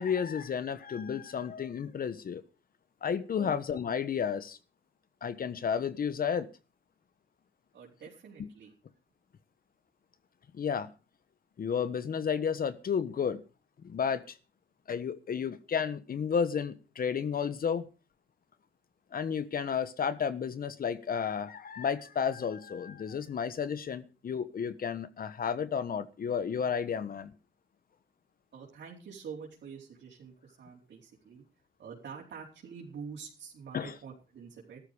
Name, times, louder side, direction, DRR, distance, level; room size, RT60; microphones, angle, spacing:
voice 1, 0.0-2.4 3.0-4.6 5.2-6.5 10.5-10.9 11.6-13.4 13.8-14.4 14.9-17.9 19.1-27.3 33.7-34.0, left 7 dB, 45° left, 1.3 m, -32 dB
voice 2, 7.7-8.7 28.5-31.4 31.8-34.8, right 6 dB, 60° right, 4.6 m, -46 dB
14.5 x 13.0 x 5.1 m
cardioid pair, 90°, 20 cm